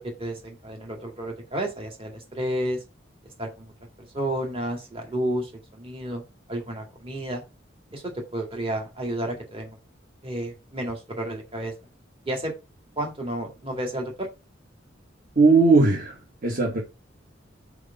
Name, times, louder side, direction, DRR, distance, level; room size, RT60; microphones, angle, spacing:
voice 1, 0.0-2.8 3.4-3.7 4.1-6.2 6.5-7.4 7.9-9.8 10.2-11.7 12.3-12.5 13.0-14.3, right 1 dB, 30° right, 2.1 m, -31 dB
voice 2, 15.3-16.8, right 3 dB, 45° right, 1.8 m, -19 dB
4.9 x 4.9 x 5.7 m
head